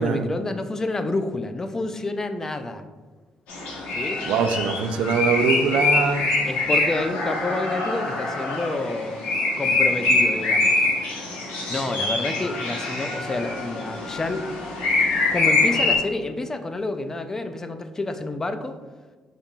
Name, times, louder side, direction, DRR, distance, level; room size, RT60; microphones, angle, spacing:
voice 1, 0.0-2.8 4.0-4.2 6.4-9.3 9.6-10.7 11.7-14.5 15.3-18.8, left 2 dB, 25° left, 9 dB, 0.4 m, -29 dB
sound 1, 3.5-16.0, left 3 dB, 80° left, 1.1 m, -24 dB
voice 2, 4.3-6.3, right 5 dB, 80° right, 8 dB, 0.3 m, -22 dB
5.3 x 3.7 x 2.4 m, 1.4 s
cardioid pair, 85°, 2 cm